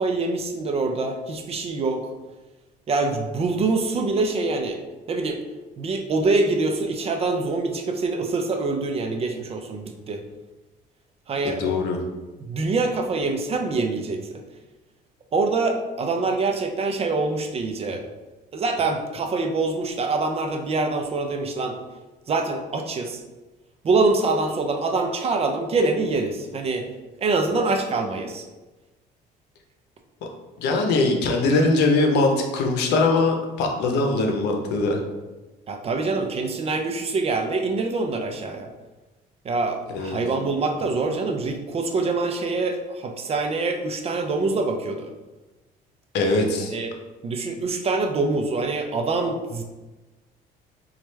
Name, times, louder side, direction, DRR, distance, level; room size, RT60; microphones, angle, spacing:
voice 1, 0.0-2.1 2.9-4.8 5.1-5.4 5.8-10.2 11.3-11.7 12.4-14.4 15.3-18.0 18.5-21.8 22.3-23.2 23.8-26.9 27.2-28.4 35.7-38.7 39.4-45.1 46.6-46.9 47.2-49.6, right 3 dB, 35° right, 4 dB, 0.5 m, -25 dB
voice 2, 11.4-12.0 30.6-35.0 39.9-40.2 46.1-46.7, left 3 dB, 85° left, 3 dB, 0.7 m, -21 dB
4.2 x 2.4 x 3.2 m, 1.1 s
cardioid pair, 110°, 17 cm